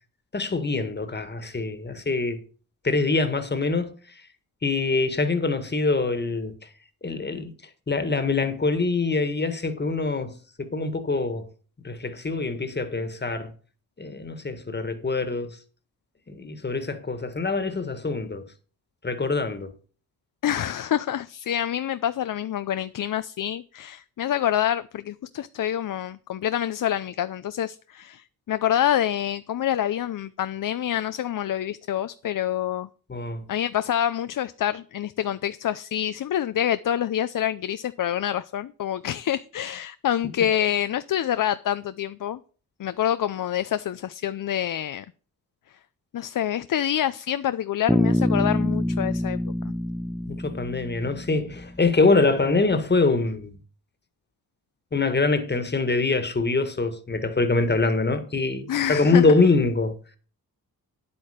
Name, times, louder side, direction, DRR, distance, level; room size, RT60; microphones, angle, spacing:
voice 1, 0.3-2.4 2.8-3.9 4.6-6.5 7.0-7.5 7.9-10.3 10.6-11.5 11.8-13.5 14.0-15.6 16.3-18.5 19.0-19.7 33.1-33.4 50.3-53.6 54.9-59.9, left 3 dB, 30° left, 1.7 m, -24 dB
voice 2, 20.4-32.9 33.5-42.4 42.8-45.0 46.1-49.4 58.7-59.3, left 10 dB, 60° left, 0.6 m, -27 dB
Bass guitar, 47.9-51.8, left 1 dB, ahead, 0.4 m, -26 dB
9.8 x 8.7 x 5.1 m
cardioid pair, 85°, 36 cm